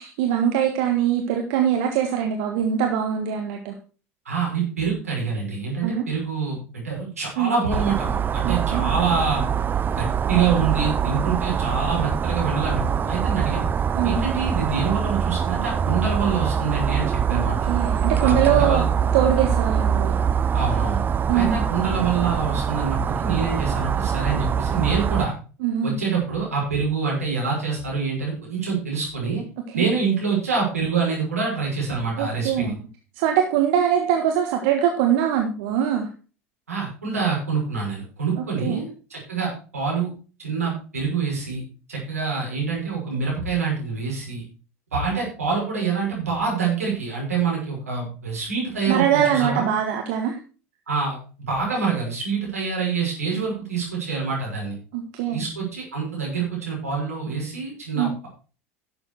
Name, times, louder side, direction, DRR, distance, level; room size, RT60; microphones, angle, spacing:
voice 1, 0.0-3.7 5.8-6.0 7.4-7.5 8.4-8.9 13.9-14.2 17.3-18.8 19.1-20.2 21.3-21.6 25.6-26.0 29.7-29.9 32.2-32.8 33.2-36.1 38.6-38.8 48.9-50.4 54.9-55.4 57.9-58.1, right 9 dB, 60° right, 4 dB, 1.5 m, -22 dB
voice 2, 4.3-9.4 9.9-13.6 14.0-17.6 18.2-18.8 20.5-21.0 21.3-25.3 25.8-29.4 29.7-32.7 36.7-40.1 40.4-41.6 41.9-44.4 44.9-49.7 50.9-51.2 51.5-54.8 55.3-58.3, right 5 dB, 90° right, -2 dB, 5.9 m, -26 dB
sound 1, 7.7-25.3, right 7 dB, 25° right, 0.5 m, -24 dB
11.5 x 7.4 x 4.6 m, 0.36 s
hypercardioid pair, 80°, 8 cm